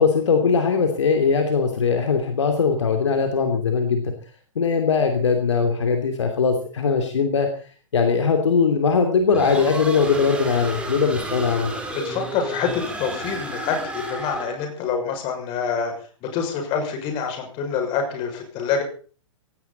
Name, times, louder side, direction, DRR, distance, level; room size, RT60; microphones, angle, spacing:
voice 1, 0.0-4.1 4.5-7.5 7.9-11.7, left 5 dB, 65° left, 5 dB, 2.9 m, -20 dB
sound 1, 9.3-14.7, right 2 dB, 5° right, 4.2 m, -32 dB
voice 2, 11.9-15.9 16.2-18.8, left 6 dB, 30° left, 3 dB, 6.3 m, -26 dB
17.5 x 16.5 x 4.2 m, 0.40 s
figure-of-eight pair, 110°, 17 cm